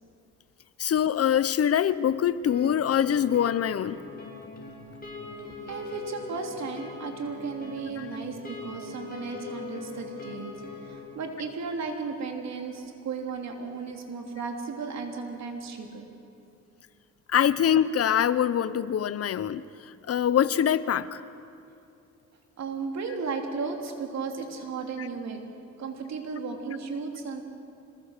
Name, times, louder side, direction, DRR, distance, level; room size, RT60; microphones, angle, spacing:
voice 1, 0.8-4.0 8.0-8.1 17.3-19.6 20.1-21.2, left 9 dB, 50° left, 16 dB, 0.8 m, -24 dB
sound 1, 2.5-11.0, left 4 dB, 30° left, 6.8 m, -41 dB
voice 2, 5.7-10.5 10.8-16.1 22.6-25.4 25.8-27.4, right 4 dB, 60° right, 3 dB, 3.5 m, -35 dB
26.0 x 21.0 x 6.7 m, 2.7 s
cardioid pair, 90°, 30 cm